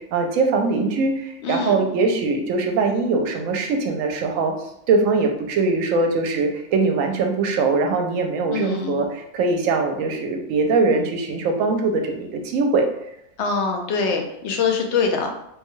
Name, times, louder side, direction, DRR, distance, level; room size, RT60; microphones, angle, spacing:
voice 1, 0.0-4.5 4.9-12.9, right 3 dB, 80° right, 4 dB, 1.0 m, -22 dB
voice 2, 1.4-1.8 8.5-9.0 13.4-15.3, left 5 dB, 65° left, 3 dB, 0.8 m, -24 dB
3.4 x 2.2 x 3.0 m, 0.76 s
omnidirectional pair, 1.4 m